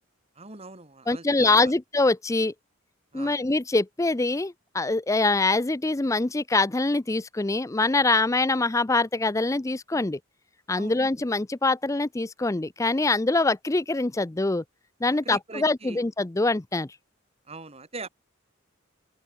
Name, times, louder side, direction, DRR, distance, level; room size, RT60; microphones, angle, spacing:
voice 1, 0.4-1.7 3.1-3.3 10.7-10.9 15.2-16.0 17.5-18.1, right 3 dB, 30° right, 2.6 m, -41 dB
voice 2, 1.1-2.5 3.1-10.2 10.7-14.6 15.0-16.9, left 3 dB, 15° left, 0.5 m, -24 dB
open air
head